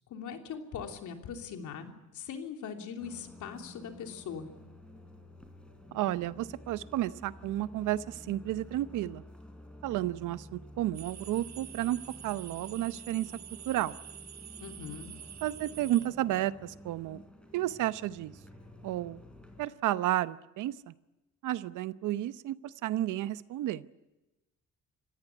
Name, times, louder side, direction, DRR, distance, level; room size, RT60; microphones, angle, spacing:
voice 1, 0.1-4.5 14.6-15.1, left 7 dB, 80° left, 4 dB, 3.2 m, -41 dB
sound 1, 3.0-19.7, left 1 dB, 5° left, 4.2 m, -51 dB
voice 2, 5.9-9.2 9.8-13.3 13.7-14.0 15.4-17.2 17.5-18.4 18.8-19.2 19.6-20.9 21.4-23.8, right 14 dB, 85° right, 15 dB, 0.9 m, -32 dB
sound 2, 10.9-16.1, right 9 dB, 65° right, 1.6 m, -47 dB
27.0 x 15.5 x 9.8 m, 1.1 s
cardioid pair, 90°, 30 cm